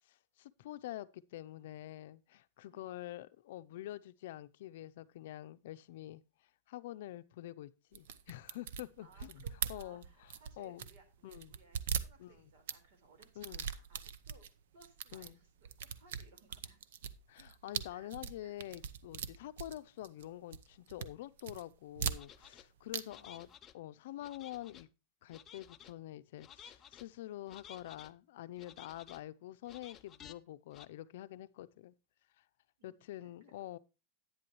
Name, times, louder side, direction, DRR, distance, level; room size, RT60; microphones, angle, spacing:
voice 1, 0.1-6.2 6.7-9.4 9.7-10.3 10.6-10.9 11.2-11.5 12.2-12.5 13.4-13.7 15.1-15.4 17.3-23.5 23.7-24.9 25.2-31.9 32.8-33.8, left 14 dB, 65° left, 0.5 m, -47 dB
sound 1, 7.9-11.0 11.3-12.8 13.2-14.5 14.8-15.3 15.7-20.3 20.5-21.1 21.4-22.6 22.9-23.0 23.3-23.4, right 8 dB, 80° right, 0.8 m, -40 dB
voice 2, 9.0-14.4 14.7-16.8 17.9-18.1 18.4-18.5 23.0-23.3 32.8-33.5, right 4 dB, 60° right, 4.0 m, -64 dB
sound 2, 22.2-22.6 23.1-23.7 24.2-24.9 25.3-25.9 26.4-27.0 27.5-28.1 28.6-29.2 29.7-30.3 30.7-30.9, left 9 dB, 20° left, 0.5 m, -55 dB
10.5 x 9.6 x 3.0 m
supercardioid pair, 165°, 0 cm